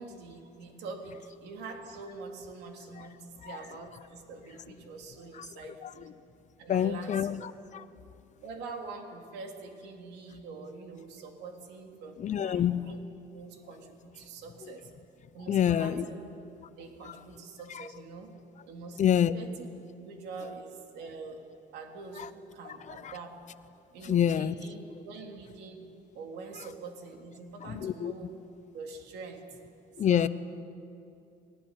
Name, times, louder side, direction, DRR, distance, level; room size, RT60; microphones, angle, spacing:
voice 1, 0.0-6.1 6.6-7.4 8.4-13.0 13.3-14.9 15.3-16.4 16.8-18.3 18.7-19.7 20.0-21.4 21.7-23.4 23.9-24.8 25.0-28.4 28.7-29.4 30.0-30.3, right 4 dB, 85° right, 3 dB, 3.3 m, -44 dB
voice 2, 5.3-6.0 6.7-7.8 12.2-12.9 14.6-14.7 15.5-16.1 17.0-17.2 17.7-17.9 19.0-19.3 20.4-20.5 22.1-22.3 22.6-23.2 24.0-24.5 27.6-28.1 30.0-30.3, left 9 dB, 45° left, 15 dB, 0.8 m, -28 dB
20.5 x 19.0 x 9.8 m, 2.6 s
cardioid pair, 110°, 17 cm